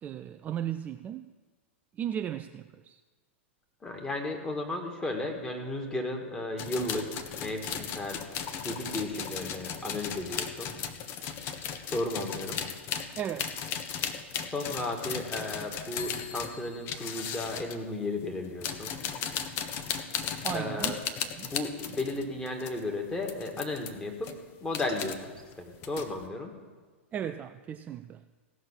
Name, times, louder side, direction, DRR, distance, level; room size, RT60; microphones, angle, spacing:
voice 1, 0.0-1.3 1.9-3.0 13.2-13.5 20.4-21.0 21.4-21.5 27.1-28.2, right 10 dB, 20° right, 9 dB, 0.3 m, -35 dB
voice 2, 3.8-8.2 8.6-10.7 11.9-12.6 14.5-19.0 20.5-21.0 21.4-24.3 24.6-26.5, left 2 dB, 10° left, 1 dB, 1.8 m, -34 dB
sound 1, 6.6-17.8 18.4-22.8 23.2-23.9 24.2-25.1 25.5-26.3, left 7 dB, 35° left, 0.9 m, -36 dB
16.5 x 6.2 x 7.4 m, 1.4 s
figure-of-eight pair, 100°, 7 cm